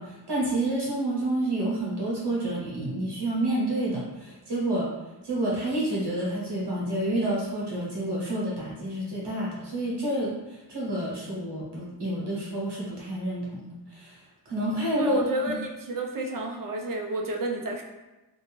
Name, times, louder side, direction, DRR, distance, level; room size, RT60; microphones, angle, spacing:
voice 1, 0.0-4.9 5.2-14.2 14.5-15.2, right 1 dB, 85° right, -5 dB, 1.0 m, -29 dB
voice 2, 15.0-17.8, right 2 dB, 55° right, 2 dB, 0.5 m, -30 dB
2.4 x 2.2 x 3.1 m, 1.0 s
wide cardioid pair, 70°, 40 cm